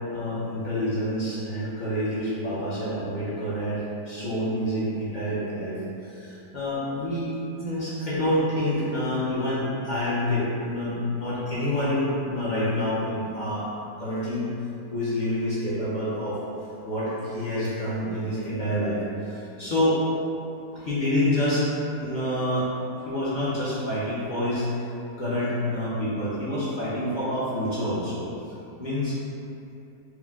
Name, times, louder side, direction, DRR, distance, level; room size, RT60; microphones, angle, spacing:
voice 1, 0.1-7.3 7.6-13.7 14.0-14.5 14.9-16.4 16.8-20.0 20.7-21.7 22.0-22.7 23.0-24.7 25.2-28.3 28.8-29.2, left 1 dB, 60° left, -10 dB, 0.5 m, -27 dB
4.6 x 2.1 x 3.5 m, 2.7 s
omnidirectional pair, 1.8 m